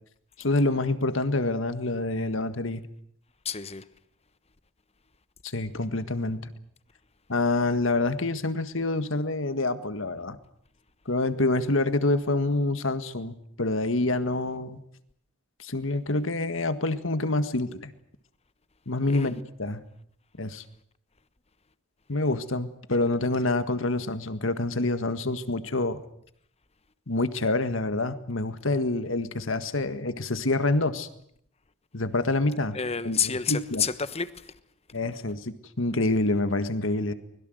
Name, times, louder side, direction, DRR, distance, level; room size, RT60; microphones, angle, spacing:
voice 1, 0.4-2.8 5.4-6.5 7.3-10.4 11.1-14.8 15.6-17.9 18.9-19.8 20.4-20.6 22.1-26.0 27.1-31.1 31.9-32.8 33.0-33.8 34.9-37.1, left 2 dB, 75° left, 1.8 m, -27 dB
voice 2, 3.4-3.8 19.1-19.3 32.7-34.5, left 6 dB, 30° left, 1.1 m, -29 dB
24.0 x 21.5 x 8.0 m
head